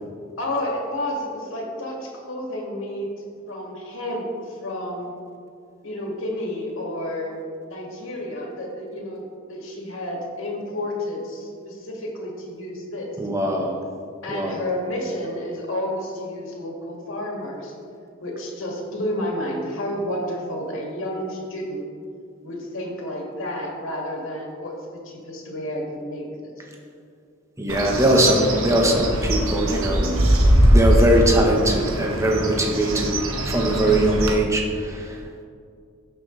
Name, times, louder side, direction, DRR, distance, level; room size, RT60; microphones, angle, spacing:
voice 1, 0.4-3.1 3.5-5.1 5.8-7.3 7.7-13.1 14.2-17.7 18.2-21.8 22.4-24.8 25.0-26.5, left 1 dB, 70° left, -1 dB, 2.2 m, -30 dB
voice 2, 13.2-13.8 14.3-14.6 27.6-30.1 30.7-33.2 33.4-35.4, right 1 dB, 15° right, 0 dB, 1.1 m, -21 dB
Bird, 27.7-34.3, right 1 dB, 80° right, 1.2 m, -21 dB
15.5 x 6.3 x 3.3 m, 2.3 s
head